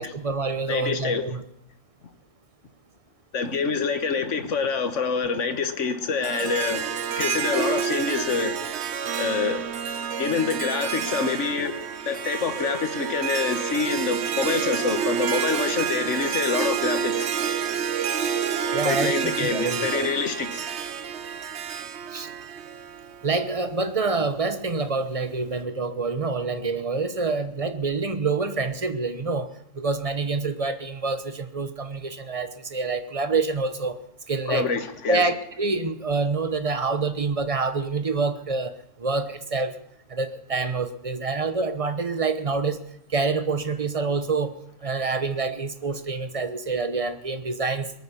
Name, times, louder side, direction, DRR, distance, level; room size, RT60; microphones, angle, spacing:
voice 1, 0.0-1.4 18.7-19.1 19.4-20.1 22.1-22.3 23.2-34.0 34.3-34.7 35.1-39.7 40.1-42.8 43.1-44.5 44.8-47.9, right 4 dB, 30° right, 1.0 m, -27 dB
voice 2, 0.7-1.2 3.3-8.5 9.2-9.7 10.2-17.3 18.8-20.7 34.5-35.2, left 5 dB, 65° left, 1.7 m, -26 dB
Harp, 6.2-23.5, right 7 dB, 60° right, 1.1 m, -29 dB
22.0 x 9.3 x 7.0 m
omnidirectional pair, 1.4 m